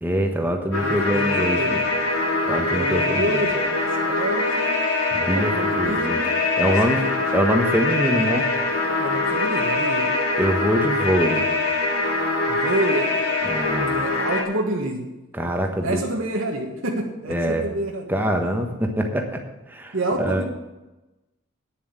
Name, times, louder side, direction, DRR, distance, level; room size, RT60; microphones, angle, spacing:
voice 1, 0.0-1.8 2.5-3.4 5.1-6.2 6.6-7.0 7.3-8.5 10.4-11.5 13.4-13.9 15.3-16.0 17.3-17.6 18.1-19.4 19.7-20.4, equal, 10° right, 3 dB, 1.2 m, -24 dB
sound 1, 0.7-14.4, left 2 dB, 85° left, 2.5 m, -23 dB
voice 2, 0.7-1.8 2.7-4.7 5.3-6.3 6.6-7.2 9.0-10.1 12.5-13.2 13.8-15.1 15.8-18.1 19.9-20.4, right 1 dB, 65° right, 0 dB, 1.6 m, -28 dB
9.5 x 7.5 x 8.1 m, 1.0 s
head